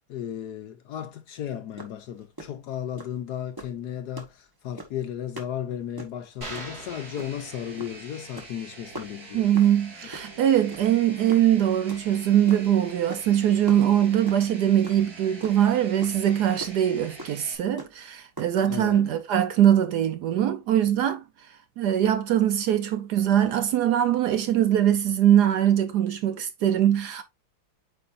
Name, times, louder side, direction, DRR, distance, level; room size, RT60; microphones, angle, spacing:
voice 1, 0.1-9.5 18.7-19.1, left 10 dB, 70° left, 1.1 m, -35 dB
sound 1, 1.8-1.9 2.2-2.5 3.0-3.2 3.6-3.8 4.2-4.3 4.8-5.0 5.4-5.5 5.8-6.2 6.5-6.7 7.2-7.5 7.8-8.0 8.2-8.5 8.9-9.1 9.5-9.7 10.1-10.3 10.7-11.0 11.3-12.7 13.1-13.4 13.7-14.5 14.8-15.0 15.3-15.7 16.0-16.1 16.6-16.7 17.2-17.3 17.8-18.0 18.4-18.5, right 1 dB, 15° right, 0.8 m, -39 dB
sound 2, 6.4-8.1, right 2 dB, 35° right, 2.1 m, -41 dB
sound 3, 6.9-17.5, right 2 dB, 50° right, 2.6 m, -45 dB
voice 2, 9.3-21.2 21.8-27.2, right 10 dB, 70° right, 1.0 m, -22 dB
8.6 x 4.6 x 2.5 m
omnidirectional pair, 2.1 m